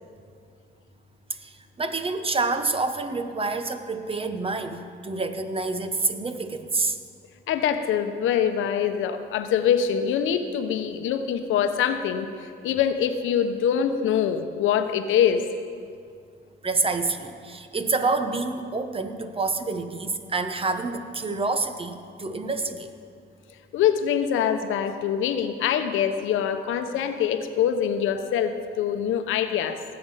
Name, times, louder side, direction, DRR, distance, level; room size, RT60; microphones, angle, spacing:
voice 1, 1.8-7.0 16.6-22.9, right 3 dB, 30° right, 9 dB, 1.0 m, -27 dB
voice 2, 7.5-15.4 23.7-29.8, left 8 dB, 85° left, 8 dB, 0.9 m, -24 dB
18.5 x 7.9 x 5.6 m, 2.3 s
cardioid pair, 90°, 20 cm